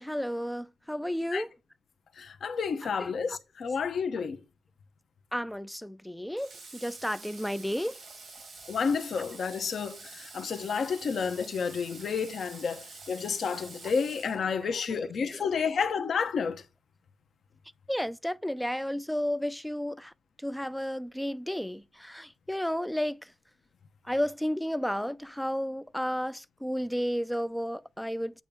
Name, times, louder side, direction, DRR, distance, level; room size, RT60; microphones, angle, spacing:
voice 1, 0.0-1.5 3.0-3.4 5.3-8.0 15.3-15.4 17.9-20.1 20.4-23.3 24.1-28.4, equal, 5° left, 0.4 m, -32 dB
voice 2, 2.2-4.4 8.7-16.6, left 6 dB, 70° left, 1.1 m, -30 dB
Water / Water tap faucet, 6.4-14.9, right 4 dB, 55° right, 2.4 m, -48 dB
8.5 x 3.0 x 5.2 m
wide cardioid pair, 135°, 0 cm